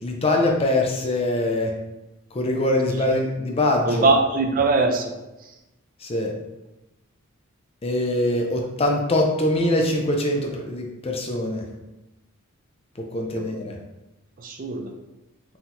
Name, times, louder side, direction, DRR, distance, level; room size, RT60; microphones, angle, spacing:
voice 1, 0.0-1.7 2.3-4.1 6.0-6.3 7.8-11.6 13.0-13.8, left 1 dB, 25° left, 1 dB, 0.5 m, -23 dB
voice 2, 3.8-5.1 5.4-5.5 13.3-13.5 14.4-14.9, right 3 dB, 40° right, 4 dB, 0.5 m, -21 dB
4.4 x 3.8 x 2.6 m, 0.98 s
head